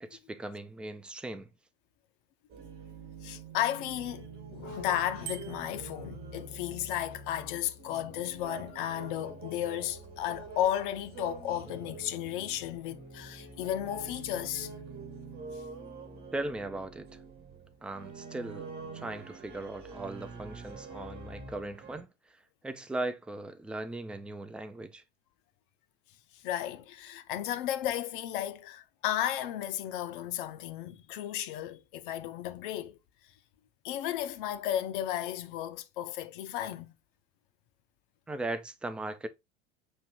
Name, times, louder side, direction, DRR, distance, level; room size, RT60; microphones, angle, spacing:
voice 1, 0.0-1.5 16.3-17.1 17.8-25.0 38.3-39.3, right 2 dB, 5° right, 0.3 m, -38 dB
sound 1, 2.5-22.0, right 3 dB, 40° right, 1.2 m, -46 dB
voice 2, 3.2-4.3 4.5-14.8 26.3-33.0 33.8-36.9, left 12 dB, 55° left, 0.6 m, -34 dB
Bicycle bell, 5.2-5.9, right 12 dB, 60° right, 0.7 m, -43 dB
6.2 x 2.8 x 3.0 m
figure-of-eight pair, 75°, 31 cm